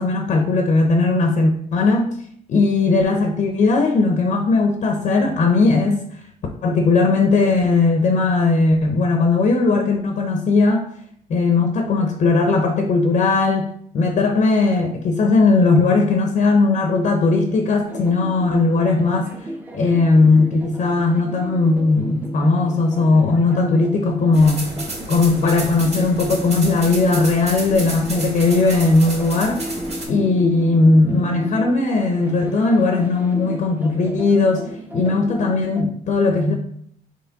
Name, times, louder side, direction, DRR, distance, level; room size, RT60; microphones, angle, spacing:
voice 1, 0.0-2.1 2.5-6.0 6.6-10.8 11.3-13.7 13.9-19.5 19.7-24.7 25.1-29.6 30.1-36.5, left 3 dB, 45° left, 4 dB, 0.6 m, -18 dB
sound 1, 17.9-35.8, right 1 dB, 10° right, 0.6 m, -34 dB
sound 2, 24.3-30.0, right 2 dB, 40° right, 1.8 m, -31 dB
4.3 x 3.1 x 3.9 m, 0.66 s
cardioid pair, 110°, 17 cm